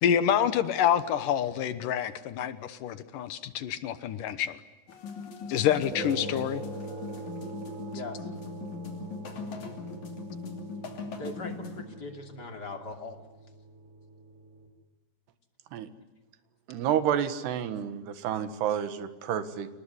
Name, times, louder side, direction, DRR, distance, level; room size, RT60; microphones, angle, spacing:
voice 1, 0.0-4.6 5.5-6.6, left 9 dB, 70° left, 13 dB, 2.3 m, -27 dB
sound 1, 4.9-11.8, left 4 dB, 45° left, 3.8 m, -40 dB
sound 2, 5.9-14.7, right 2 dB, 60° right, 6.3 m, -42 dB
voice 2, 7.9-8.3 11.2-13.2, left 2 dB, 30° left, 5 dB, 2.6 m, -40 dB
voice 3, 16.7-19.7, right 9 dB, 75° right, 11 dB, 3.6 m, -29 dB
28.0 x 20.0 x 9.9 m, 1.1 s
omnidirectional pair, 4.9 m